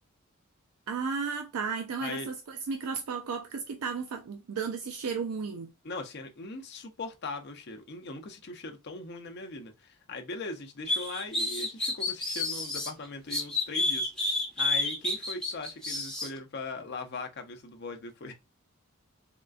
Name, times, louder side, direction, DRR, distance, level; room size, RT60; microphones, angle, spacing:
voice 1, 0.9-5.7, right 5 dB, 80° right, 0.4 m, -34 dB
voice 2, 2.0-2.3 5.8-18.3, left 3 dB, 50° left, 0.6 m, -40 dB
sound 1, 10.9-12.9 13.3-16.3, left 2 dB, 5° left, 0.6 m, -30 dB
3.6 x 2.3 x 2.4 m
head